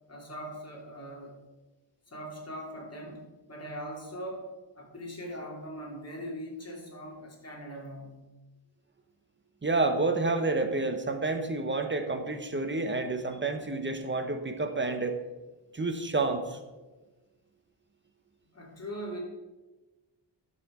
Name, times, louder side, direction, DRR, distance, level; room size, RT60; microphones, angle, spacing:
voice 1, 0.1-1.4 2.1-4.5 4.7-8.2 15.7-15.8 18.5-19.2, equal, 35° left, -2 dB, 2.9 m, -41 dB
voice 2, 9.6-15.2 15.7-16.6, right 3 dB, 25° right, 7 dB, 1.1 m, -29 dB
11.5 x 6.9 x 5.1 m, 1.2 s
wide cardioid pair, 110°, 46 cm